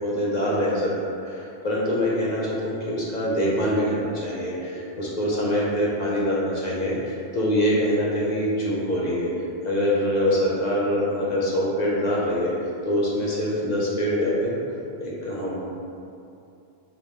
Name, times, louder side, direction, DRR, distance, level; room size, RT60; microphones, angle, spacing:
voice 1, 0.0-9.3 9.6-12.5 12.8-14.6 15.0-15.5, equal, 45° left, -5 dB, 0.7 m, -24 dB
5.0 x 2.3 x 3.4 m, 2.6 s
omnidirectional pair, 1.3 m